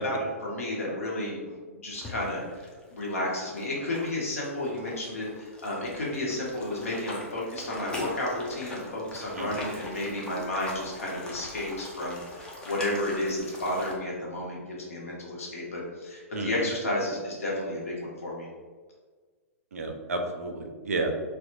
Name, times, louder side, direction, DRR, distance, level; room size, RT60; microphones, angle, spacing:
voice 1, 0.0-2.4 2.9-18.5, left 1 dB, 70° left, -3 dB, 0.8 m, -32 dB
sound 1, 1.9-13.9, left 1 dB, 10° left, 0.4 m, -42 dB
voice 2, 16.3-16.7 19.7-21.1, right 2 dB, 70° right, 4 dB, 0.4 m, -31 dB
2.7 x 2.0 x 2.5 m, 1.5 s
figure-of-eight pair, 110°, 8 cm